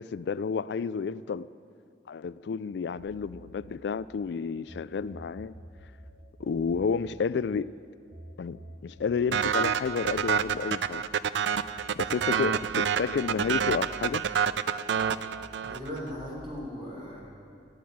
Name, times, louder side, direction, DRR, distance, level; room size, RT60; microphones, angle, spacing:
voice 1, 0.0-1.5 2.1-5.5 6.4-7.7 8.4-11.0 12.0-14.2, left 5 dB, 70° left, 17 dB, 0.3 m, -31 dB
sound 1, 3.0-4.8 5.1-11.7 12.0-14.6 15.0-16.6, right 1 dB, 60° right, 3.1 m, -50 dB
sound 2, 9.3-16.0, right 7 dB, 85° right, 0.4 m, -28 dB
voice 2, 15.6-17.2, equal, 30° right, -3 dB, 4.0 m, -38 dB
14.0 x 8.5 x 9.3 m, 2.3 s
head